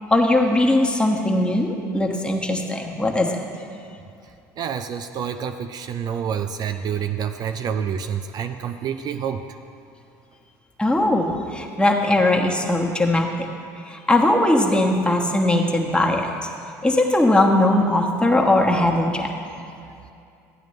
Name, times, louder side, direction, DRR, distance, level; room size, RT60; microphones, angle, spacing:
voice 1, 0.1-3.4 10.8-13.3 13.9-16.3 16.8-19.3, left 1 dB, 10° left, 1 dB, 1.2 m, -19 dB
voice 2, 4.6-9.4, right 8 dB, 45° right, 8 dB, 0.4 m, -28 dB
13.0 x 8.9 x 3.2 m, 2.5 s
hypercardioid pair, 70°, 9 cm